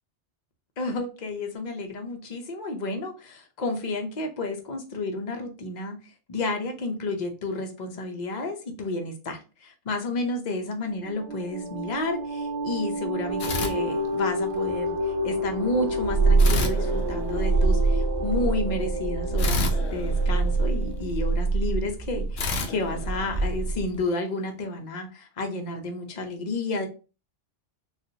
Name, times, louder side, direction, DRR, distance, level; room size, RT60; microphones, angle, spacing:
voice 1, 0.8-26.9, left 2 dB, 45° left, 4 dB, 0.7 m, -31 dB
sound 1, 10.8-21.0, left 1 dB, 70° right, 1.0 m, -31 dB
sound 2, 13.4-14.5 16.4-17.8 19.4-21.1 22.4-23.9, left 3 dB, 75° left, 0.9 m, -32 dB
Purr, 15.9-24.0, right 3 dB, 35° right, 1.0 m, -25 dB
4.1 x 2.4 x 2.7 m, 0.34 s
omnidirectional pair, 1.2 m